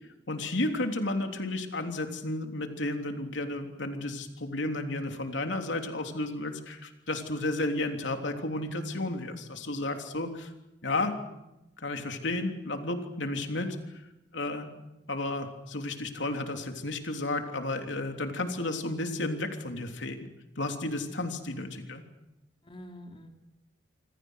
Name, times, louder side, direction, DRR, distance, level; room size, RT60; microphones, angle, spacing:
voice 1, 0.3-10.5 10.8-11.1 11.8-14.0 14.3-14.7 15.1-22.0, left 2 dB, 80° left, 5 dB, 3.3 m, -32 dB
voice 2, 14.4-14.8 21.0-21.3 22.6-23.3, equal, 30° left, 3 dB, 3.2 m, -48 dB
27.0 x 26.5 x 6.5 m, 0.94 s
head